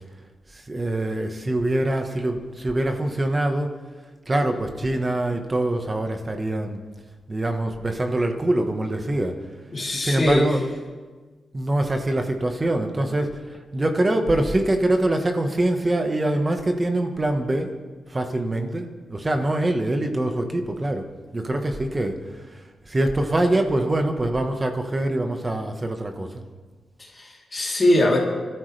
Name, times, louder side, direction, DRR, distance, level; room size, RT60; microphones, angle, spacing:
voice 1, 0.5-3.7 4.3-6.8 7.3-9.4 10.0-10.6 11.5-17.8 18.1-21.0 21.3-26.4, right 1 dB, 20° right, 5 dB, 1.4 m, -24 dB
voice 2, 9.7-10.5 27.0-28.2, left 1 dB, 25° left, -3 dB, 3.4 m, -21 dB
24.0 x 13.5 x 3.4 m, 1.4 s
wide cardioid pair, 140°, 0 cm